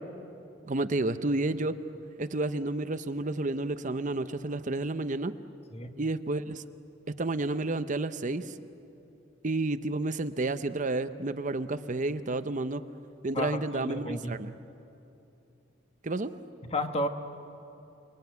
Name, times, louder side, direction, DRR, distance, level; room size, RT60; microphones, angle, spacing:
voice 1, 0.7-1.8 2.2-5.3 6.0-6.6 7.2-8.5 9.4-12.8 13.2-14.5 16.0-16.3, right 2 dB, 40° right, 11 dB, 0.7 m, -30 dB
voice 2, 13.3-14.4 16.6-17.1, left 1 dB, 30° left, 7 dB, 1.3 m, -32 dB
29.0 x 21.0 x 9.4 m, 2.8 s
head